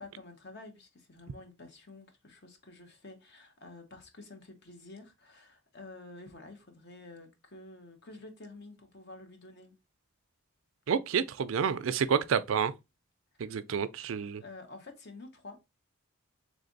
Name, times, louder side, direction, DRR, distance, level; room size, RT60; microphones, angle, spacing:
voice 1, 0.0-9.8 13.4-13.6 14.4-15.7, left 2 dB, 50° left, 1.1 m, -50 dB
voice 2, 10.9-12.7 13.4-14.4, right 7 dB, 65° right, 0.4 m, -29 dB
3.5 x 3.3 x 3.9 m
head